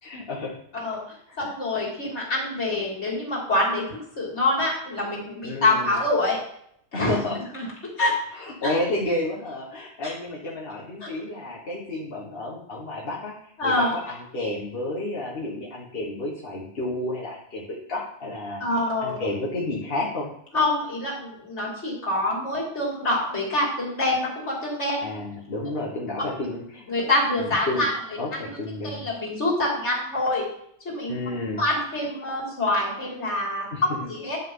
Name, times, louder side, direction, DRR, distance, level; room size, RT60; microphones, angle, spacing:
voice 1, 0.0-0.5 1.3-1.5 5.4-6.0 6.9-7.4 8.3-13.3 13.6-17.6 17.9-18.6 19.0-20.3 25.0-26.9 27.4-27.9 28.2-29.0 31.1-31.6 33.7-34.1, left 2 dB, 55° left, -4 dB, 1.7 m, -31 dB
voice 2, 1.4-3.8 4.2-6.4 6.9-7.1 7.5-7.6 8.0-8.1 8.6-8.7 10.0-10.1 13.6-13.9 18.6-19.2 20.5-25.1 26.9-27.9 28.3-28.6 28.9-30.5 30.8-31.1 31.6-34.4, left 2 dB, 90° left, -4 dB, 3.1 m, -25 dB
10.5 x 5.9 x 3.9 m, 0.70 s
omnidirectional pair, 1.2 m